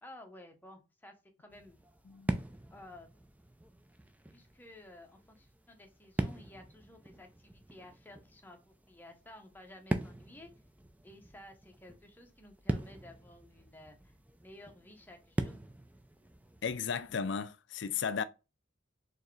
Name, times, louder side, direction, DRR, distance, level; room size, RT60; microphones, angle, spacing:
voice 1, 0.0-1.8 2.7-3.1 4.3-10.5 11.0-15.6, left 1 dB, 10° left, 0.9 m, -54 dB
sound 1, 1.5-17.3, right 1 dB, 10° right, 0.4 m, -42 dB
voice 2, 16.6-18.2, left 6 dB, 65° left, 0.5 m, -34 dB
4.6 x 3.2 x 3.2 m
head